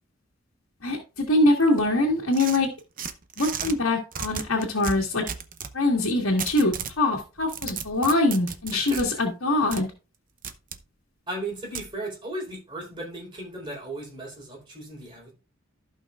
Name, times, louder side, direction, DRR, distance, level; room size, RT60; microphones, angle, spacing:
voice 1, 0.8-2.7 3.4-5.3 5.7-9.9, left 2 dB, 80° left, 1.7 m, -23 dB
sound 1, 2.3-3.7 4.1-5.7 6.4-7.0 7.4-9.0 9.7-9.8 10.4-10.8 11.7-11.9, right 7 dB, 45° right, 0.8 m, -34 dB
voice 2, 8.7-9.0 11.3-15.3, right 1 dB, 25° right, 4.3 m, -36 dB
15.0 x 5.5 x 2.4 m
head